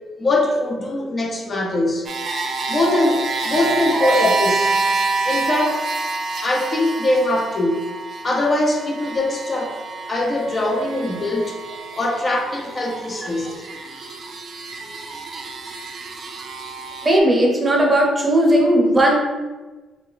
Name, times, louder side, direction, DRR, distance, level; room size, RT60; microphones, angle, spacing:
voice 1, 0.2-2.1 2.7-4.7 5.2-5.8 6.4-7.9 8.2-9.8 10.1-11.6 11.9-13.6, left 1 dB, 35° left, 0 dB, 0.7 m, -21 dB
sound 1, 2.1-17.2, right 3 dB, 50° right, 0.4 m, -27 dB
voice 2, 17.0-19.2, right 1 dB, 25° right, 0 dB, 0.7 m, -16 dB
3.3 x 2.1 x 3.8 m, 1.2 s
cardioid pair, 90°, 0 cm